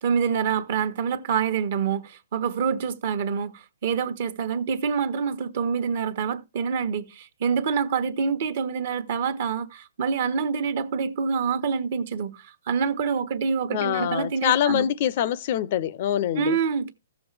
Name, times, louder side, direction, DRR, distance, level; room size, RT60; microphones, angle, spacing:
voice 1, 0.0-14.9 16.4-16.9, right 6 dB, 55° right, 1.1 m, -26 dB
voice 2, 13.7-16.6, left 11 dB, 45° left, 0.5 m, -24 dB
14.5 x 7.0 x 3.3 m
hypercardioid pair, 150°, 0 cm